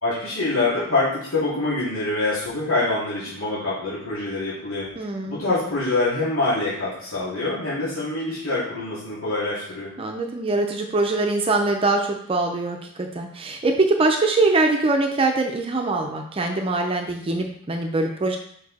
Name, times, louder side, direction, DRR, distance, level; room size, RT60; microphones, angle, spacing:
voice 1, 0.0-4.9 5.3-9.9, left 2 dB, 90° left, -9 dB, 2.7 m, -25 dB
voice 2, 5.0-5.4 10.0-18.4, right 2 dB, 25° right, 3 dB, 0.5 m, -23 dB
5.3 x 4.7 x 4.1 m, 0.66 s
head